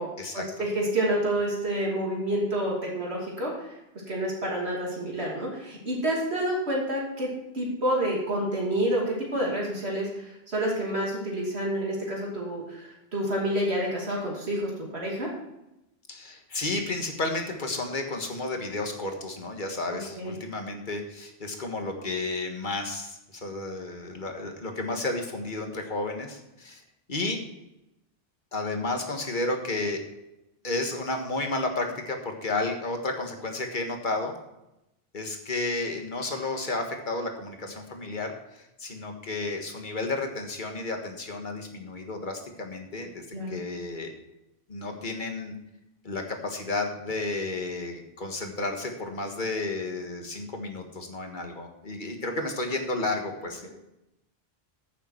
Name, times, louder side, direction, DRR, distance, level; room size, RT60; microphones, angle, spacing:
voice 1, 0.0-3.7 4.1-15.3 20.2-20.3 43.3-43.7, right 1 dB, 90° right, -3 dB, 3.0 m, -29 dB
voice 2, 16.1-26.8 27.1-27.4 28.5-30.0 30.6-34.3 35.1-44.1 44.7-45.5 46.0-53.7, left 2 dB, 50° left, 3 dB, 1.7 m, -32 dB
14.5 x 6.9 x 4.5 m, 0.89 s
omnidirectional pair, 1.1 m